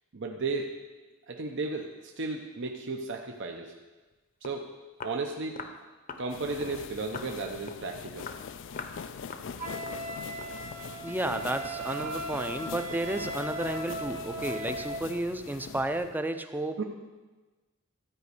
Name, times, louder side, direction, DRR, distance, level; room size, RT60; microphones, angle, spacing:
voice 1, 0.1-0.8 1.3-3.7 4.4-4.8 5.0-5.6 6.2-8.3 16.8-16.9, right 3 dB, 60° right, 2 dB, 0.8 m, -34 dB
Walk footsteps, 4.1-4.2 4.4-4.6 5.0-5.2 5.6-5.8 6.1-6.3 6.6-6.8 7.1-7.3 7.7-7.9 8.2-8.4 8.8-9.0 9.3-9.5 9.8-10.0 10.4-10.6, left 4 dB, 40° left, 0.8 m, -42 dB
sound 1, 6.3-16.2, left 6 dB, 60° left, 0.4 m, -42 dB
Wind instrument woodwind instrument, 9.6-15.0, right 2 dB, 30° right, 1.0 m, -38 dB
voice 2, 11.0-16.8, right 1 dB, 10° right, 8 dB, 0.5 m, -32 dB
13.0 x 5.2 x 8.2 m, 1.2 s
head